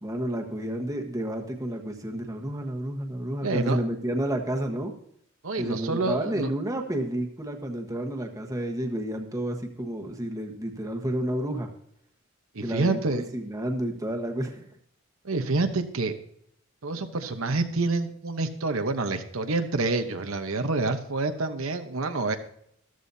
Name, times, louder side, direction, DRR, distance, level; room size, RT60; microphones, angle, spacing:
voice 1, 0.0-4.9 5.6-11.7 12.6-14.7, right 1 dB, 15° right, 3 dB, 1.2 m, -30 dB
voice 2, 3.4-3.8 5.4-6.5 12.5-13.3 15.2-16.1 16.8-22.4, right 3 dB, 75° right, 6 dB, 0.9 m, -27 dB
14.0 x 13.0 x 2.7 m, 0.69 s
head